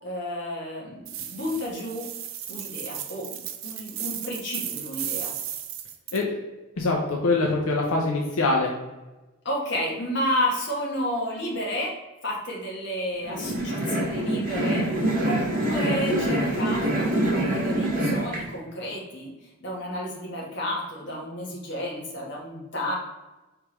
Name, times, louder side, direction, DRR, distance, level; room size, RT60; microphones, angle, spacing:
voice 1, 0.0-2.1 2.5-5.3 9.4-11.9 12.2-22.9, left 1 dB, 55° left, -2 dB, 1.2 m, -31 dB
sound 1, 1.1-6.2, right 10 dB, 70° right, 0.5 m, -35 dB
voice 2, 6.8-8.7, left 3 dB, 85° left, -1 dB, 0.6 m, -24 dB
sound 2, 13.2-18.4, right 1 dB, 40° right, 1.2 m, -25 dB
4.6 x 3.3 x 3.0 m, 1.1 s
head